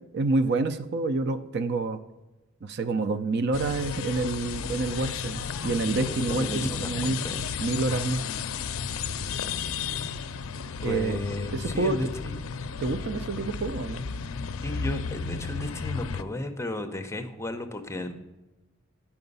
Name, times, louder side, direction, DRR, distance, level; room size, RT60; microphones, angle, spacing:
voice 1, 0.0-2.0 2.6-7.2 7.6-8.2 10.8-11.2 11.5-12.0 12.8-14.0, right 3 dB, 55° right, 11 dB, 0.5 m, -28 dB
sound 1, 3.5-16.2, left 5 dB, 85° left, 0.4 m, -33 dB
voice 2, 6.1-7.4 9.8-9.9 10.8-12.4 14.6-18.1, left 1 dB, 15° left, 6 dB, 0.7 m, -34 dB
9.7 x 5.9 x 5.4 m, 1.1 s
head